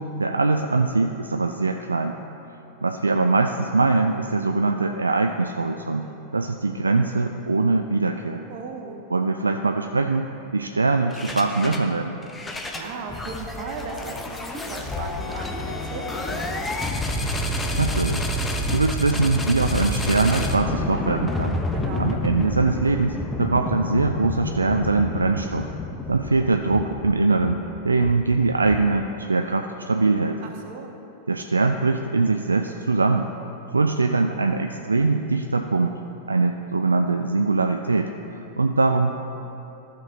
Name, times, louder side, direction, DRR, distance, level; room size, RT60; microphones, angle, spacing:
voice 1, 0.0-2.2 2.8-6.1 6.3-8.4 9.1-10.3 10.5-12.2 17.8-18.2 18.7-21.6 22.0-25.7 26.1-30.4 31.3-33.3 33.7-36.0 36.3-39.1, right 3 dB, 80° right, 5 dB, 0.3 m, -22 dB
voice 2, 8.5-9.0 12.5-16.7 21.7-22.1 30.4-30.9, right 4 dB, 50° right, 2 dB, 1.2 m, -37 dB
sound 1, 11.1-11.9 12.2-29.2, left 1 dB, 15° left, 0.7 m, -29 dB
14.5 x 6.0 x 3.8 m, 2.9 s
figure-of-eight pair, 90°, 0 cm